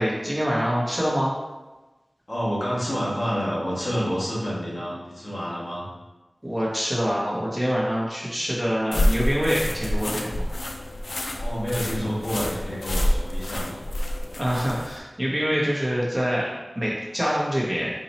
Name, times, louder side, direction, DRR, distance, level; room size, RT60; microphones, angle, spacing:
voice 1, 0.0-1.4 6.4-10.4 14.3-17.9, equal, 15° right, -6 dB, 1.2 m, -25 dB
voice 2, 2.3-5.8 11.3-13.8, equal, 45° left, -7 dB, 1.5 m, -28 dB
sound 1, 8.9-15.0, left 1 dB, 80° left, 0.4 m, -27 dB
4.3 x 2.8 x 4.1 m, 1.1 s
wide cardioid pair, 60°, 0 cm